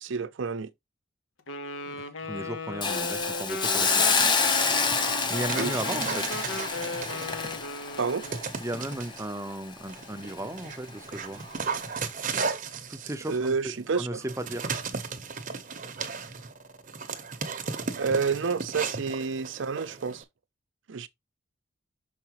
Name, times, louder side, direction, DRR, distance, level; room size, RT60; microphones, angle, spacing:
voice 1, 0.0-0.7 5.6-5.8 8.0-8.2 13.3-14.2 17.9-20.2 20.9-21.1, right 5 dB, 65° right, 0.5 m, -29 dB
Wind instrument woodwind instrument, 1.5-8.4, left 2 dB, 75° left, 1.0 m, -37 dB
voice 2, 1.9-4.3 5.3-6.3 8.6-11.4 12.9-13.5 13.9-14.7, right 1 dB, 15° right, 0.7 m, -35 dB
Hiss, 2.8-9.8 10.2-10.4, left 4 dB, 25° left, 0.8 m, -28 dB
Dog, 4.8-7.7 8.2-9.3 9.9-20.2, right 5 dB, 40° right, 0.8 m, -36 dB
6.6 x 4.8 x 2.9 m
head